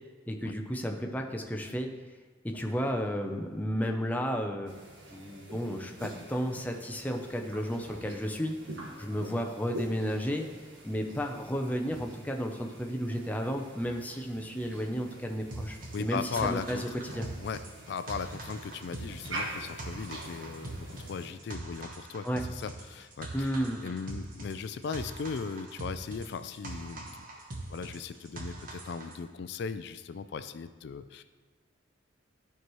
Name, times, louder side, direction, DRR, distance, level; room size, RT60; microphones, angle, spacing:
voice 1, 0.3-1.9 2.4-4.7 5.1-8.6 9.0-10.5 10.8-17.2 22.2-22.4 23.3-23.8, equal, 10° left, 2 dB, 0.6 m, -33 dB
sound 1, 4.7-21.3, right 1 dB, 80° right, 1.5 m, -45 dB
sound 2, 15.5-29.2, right 2 dB, 45° right, 1.0 m, -42 dB
voice 2, 15.9-16.8 17.4-17.6 17.9-23.5 23.8-27.2 27.7-31.2, left 5 dB, 60° left, 11 dB, 0.3 m, -37 dB
12.0 x 4.7 x 3.1 m, 1.5 s
head